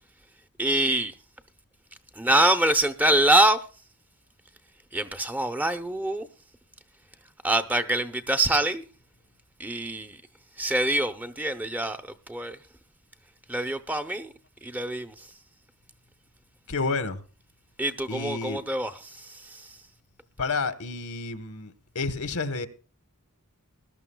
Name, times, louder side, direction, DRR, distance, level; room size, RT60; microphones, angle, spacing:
voice 1, 0.6-1.1 2.2-3.6 4.9-6.3 7.4-8.8 9.6-10.2 10.6-12.0 12.3-12.6 13.5-14.3 14.6-15.1 17.8-19.7, right 1 dB, 5° right, 0.7 m, -25 dB
voice 2, 16.7-17.2 18.1-18.6 20.4-22.7, left 3 dB, 70° left, 1.2 m, -30 dB
20.5 x 12.0 x 2.3 m
head